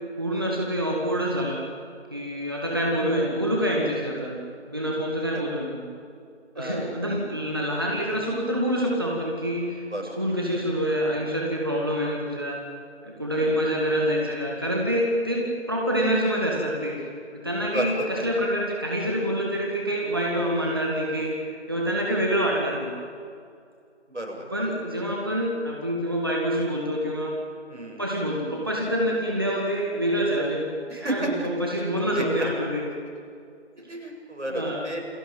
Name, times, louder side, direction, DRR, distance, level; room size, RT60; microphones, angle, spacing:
voice 1, 0.2-1.6 2.1-4.4 4.6-5.8 6.6-9.8 10.2-12.6 13.0-17.0 17.3-21.4 21.7-22.9 24.5-27.3 28.0-32.8 33.8-33.9 34.5-34.8, equal, 20° right, -2 dB, 2.1 m, -26 dB
voice 2, 6.5-6.9 9.9-10.1 13.3-13.6 17.7-18.3 24.1-24.4 27.7-28.0 30.9-31.5 32.0-32.5 33.9-35.0, right 1 dB, 90° right, 1 dB, 7.9 m, -31 dB
29.0 x 19.5 x 9.0 m, 2.4 s
figure-of-eight pair, 175°, 34 cm